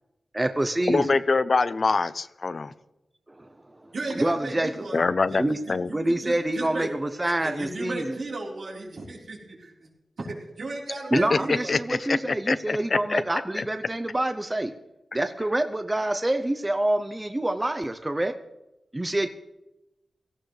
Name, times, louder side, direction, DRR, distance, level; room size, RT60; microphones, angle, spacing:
voice 1, 0.4-1.1 3.4-3.5 4.1-4.7 5.4-5.6 5.9-8.2 11.1-14.7 15.1-18.3 18.9-19.3, right 1 dB, 20° right, 7 dB, 0.6 m, -26 dB
voice 2, 0.9-2.7 4.9-5.9 11.1-13.2 13.6-13.7, left 4 dB, 50° left, 15 dB, 0.5 m, -25 dB
voice 3, 3.9-5.0 5.3-5.4 5.7-6.9 7.2-9.9 10.2-11.7, right 2 dB, 75° right, -3 dB, 4.0 m, -35 dB
17.5 x 15.0 x 3.3 m, 0.94 s
wide cardioid pair, 120°, 0 cm